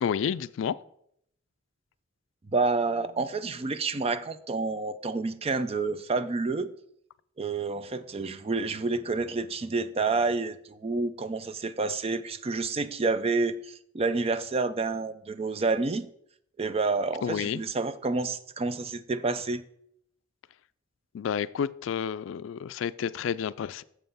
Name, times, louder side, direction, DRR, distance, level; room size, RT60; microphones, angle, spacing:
voice 1, 0.0-0.8 17.2-17.6 21.1-23.8, left 7 dB, 75° left, 0.3 m, -30 dB
voice 2, 2.5-6.7 7.4-16.0 16.6-19.6, right 3 dB, 30° right, 0.4 m, -29 dB
7.2 x 5.7 x 5.4 m
head